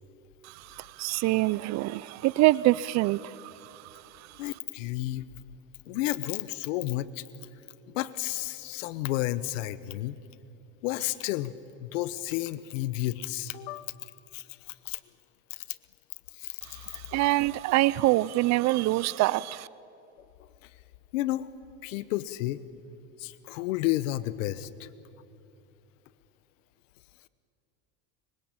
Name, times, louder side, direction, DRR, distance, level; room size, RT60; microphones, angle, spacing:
voice 1, 0.8-3.5 16.9-19.7, right 18 dB, 45° right, 20 dB, 0.5 m, -25 dB
voice 2, 4.4-5.2 5.9-7.2 7.9-10.1 10.8-11.5 11.8-13.9 14.3-14.4 14.9-15.0 15.5-15.6 16.4-16.8 21.1-21.5 21.8-22.6 23.2-24.9, left 16 dB, 85° left, 16 dB, 1.0 m, -31 dB
24.0 x 24.0 x 8.8 m, 2.7 s
supercardioid pair, 120°, 38 cm